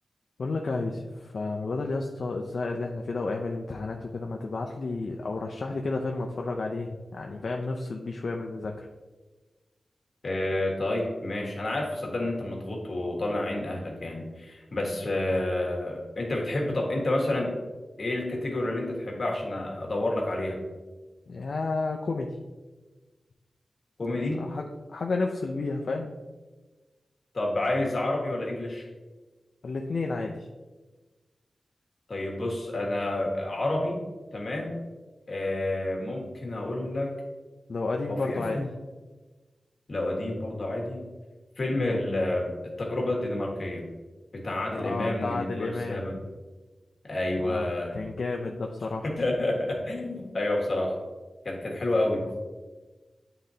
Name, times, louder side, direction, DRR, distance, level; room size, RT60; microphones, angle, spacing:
voice 1, 0.4-8.9 21.3-22.3 24.3-26.2 29.6-30.5 37.7-38.6 41.7-42.0 44.7-46.0 47.4-47.7 47.9-49.0, left 3 dB, 70° left, 1 dB, 0.5 m, -31 dB
voice 2, 10.2-17.5 18.0-20.6 24.0-24.4 27.3-28.9 32.1-34.0 34.3-34.8 35.3-37.1 38.1-38.7 39.9-41.0 41.6-42.5 42.8-43.8 44.3-46.1 47.0-47.9 49.0-50.9 51.4-52.2, left 1 dB, 55° left, -1 dB, 1.4 m, -29 dB
9.2 x 3.8 x 2.7 m, 1.3 s
wide cardioid pair, 100°, 0 cm